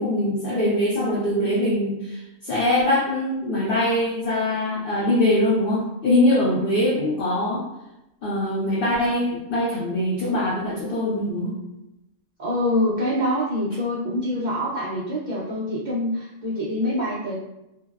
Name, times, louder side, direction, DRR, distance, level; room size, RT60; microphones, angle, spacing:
voice 1, 0.0-7.6 8.2-11.5, left 1 dB, 55° left, -6 dB, 0.6 m, -22 dB
voice 2, 12.4-17.3, left 1 dB, 70° right, -8 dB, 0.4 m, -25 dB
2.6 x 2.0 x 2.3 m, 0.90 s
omnidirectional pair, 1.4 m